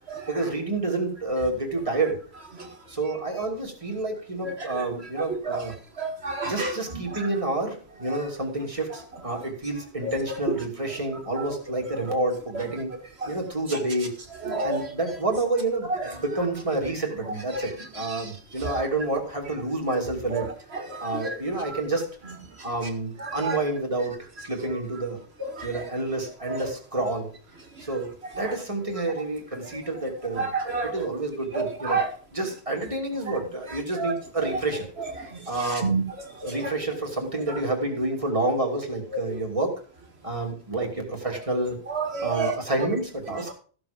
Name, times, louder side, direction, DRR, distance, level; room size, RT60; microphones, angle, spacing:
voice 1, 0.3-2.2 2.9-5.8 6.4-12.9 13.3-14.1 14.6-20.5 21.0-22.1 22.6-25.2 25.6-27.3 27.8-32.0 32.3-34.9 35.5-36.0 36.4-39.7 40.2-41.8 42.2-43.5, right 2 dB, 30° right, 0 dB, 2.8 m, -29 dB
voice 2, 6.0-6.7 10.1-10.2 13.2-13.3 14.4-14.8 17.5-17.7 18.6-18.8 20.3-20.4 21.0-21.3 23.4-23.6 25.4-25.8 26.5-26.6 30.4-31.1 31.5-32.1 34.0-34.5 35.8-36.0 36.4-36.6 41.9-42.5, right 4 dB, 85° right, 3 dB, 2.3 m, -28 dB
14.5 x 7.0 x 5.2 m, 0.42 s
omnidirectional pair, 1.1 m